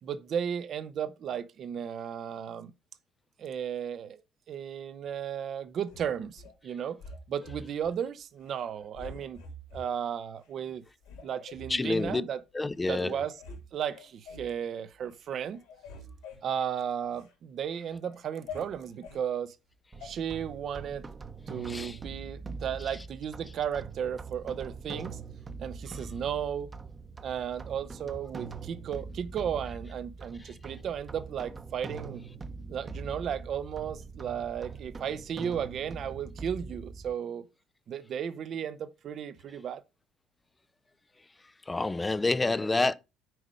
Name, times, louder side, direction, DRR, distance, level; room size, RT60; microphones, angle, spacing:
voice 1, 0.0-2.7 3.4-7.0 7.3-9.4 9.7-10.8 11.2-12.4 12.9-13.4 13.7-15.6 16.4-19.6 20.0-21.1 21.5-25.2 25.6-26.7 27.2-32.2 32.7-37.5 37.9-39.8, right 8 dB, 45° right, 0.9 m, -34 dB
sound 1, 5.9-6.5 7.0-8.0 8.4-8.6 8.9-9.9 10.4-10.5 11.0-12.2 12.8-12.9 13.2-13.6 13.9-14.5 15.0-15.3 15.5-17.3 17.7-19.2 20.0-20.1, left 3 dB, 70° left, 3.0 m, -46 dB
voice 2, 11.7-12.2 12.5-13.2 21.7-22.0 41.7-42.9, left 2 dB, 15° left, 0.6 m, -28 dB
sound 2, 19.9-37.1, right 4 dB, 25° right, 1.1 m, -43 dB
7.8 x 5.0 x 5.5 m
figure-of-eight pair, 60°, 0 cm